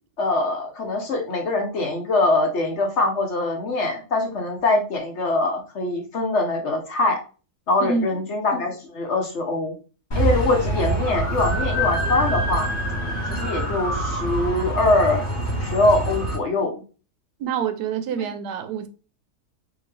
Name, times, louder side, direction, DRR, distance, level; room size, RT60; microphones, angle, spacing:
voice 1, 0.2-7.2 7.7-9.7 10.1-12.7 13.3-15.3 15.6-16.8, left 2 dB, 55° left, 0.9 m, -23 dB
sound 1, 10.1-16.4, right 1 dB, 30° left, 1.5 m, -25 dB
voice 2, 17.4-18.9, right 6 dB, 85° right, 1.2 m, -26 dB
3.6 x 2.7 x 3.2 m
omnidirectional pair, 1.7 m